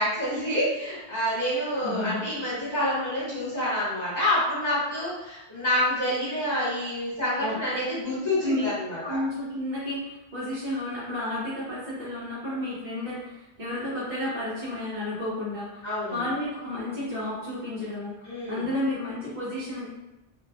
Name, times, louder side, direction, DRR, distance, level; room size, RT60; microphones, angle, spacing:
voice 1, 0.0-9.2 15.8-16.2 18.2-18.7, left 1 dB, 40° left, -11 dB, 1.1 m, -27 dB
voice 2, 1.8-2.2 7.4-7.6 8.4-19.9, left 1 dB, 55° right, -11 dB, 1.1 m, -32 dB
2.7 x 2.3 x 2.4 m, 0.96 s
omnidirectional pair, 1.1 m